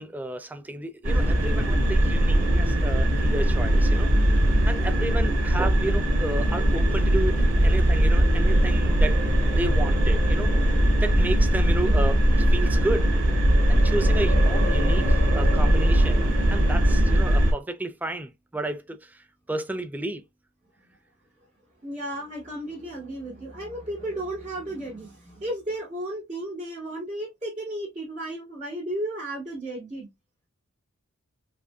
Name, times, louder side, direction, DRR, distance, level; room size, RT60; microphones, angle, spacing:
voice 1, 0.0-10.7 11.0-13.1 13.7-16.2 16.5-20.2, right 2 dB, 10° right, 0.3 m, -32 dB
sound 1, 1.0-17.5, right 1 dB, 70° right, 1.7 m, -20 dB
voice 2, 21.8-30.1, right 1 dB, 30° right, 2.1 m, -34 dB
4.7 x 2.6 x 2.2 m
head